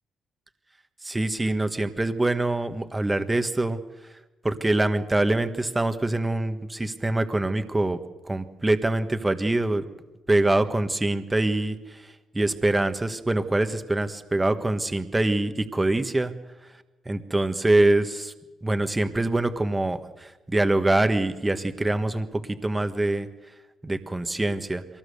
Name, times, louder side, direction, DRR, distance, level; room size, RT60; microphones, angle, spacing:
voice 1, 1.0-3.8 4.4-8.0 8.2-9.8 10.3-16.3 17.0-18.3 18.6-23.3 23.8-24.8, right 2 dB, 15° right, 9 dB, 1.5 m, -24 dB
23.5 x 19.0 x 6.7 m, 1.1 s
cardioid pair, 90°, 0 cm